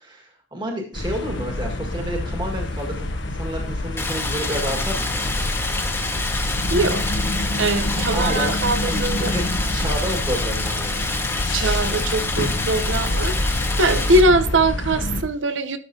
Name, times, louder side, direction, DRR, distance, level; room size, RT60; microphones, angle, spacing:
voice 1, 0.0-5.5 7.8-9.4 9.7-11.1, equal, 25° right, 1.9 m, -30 dB
sound 1, 0.9-15.2, left 1 dB, 70° left, 1.3 m, -26 dB
Stream, 4.0-14.2, left 3 dB, 15° left, 1.3 m, -28 dB
voice 2, 6.7-7.0 7.6-9.3 11.5-15.8, right 2 dB, 75° right, 0.9 m, -22 dB
12.5 x 6.9 x 2.8 m
head